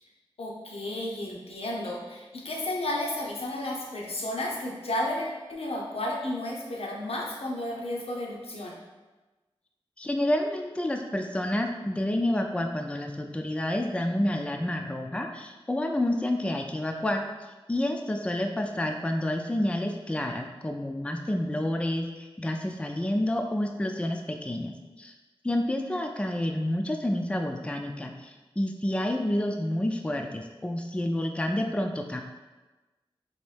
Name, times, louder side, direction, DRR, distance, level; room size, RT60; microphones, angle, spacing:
voice 1, 0.4-8.8, left 1 dB, 75° left, -2 dB, 0.7 m, -32 dB
voice 2, 10.0-17.2 17.7-25.1 25.4-32.2, left 1 dB, 10° left, 3 dB, 0.3 m, -29 dB
4.1 x 2.6 x 3.3 m, 1.2 s
wide cardioid pair, 70°, 10 cm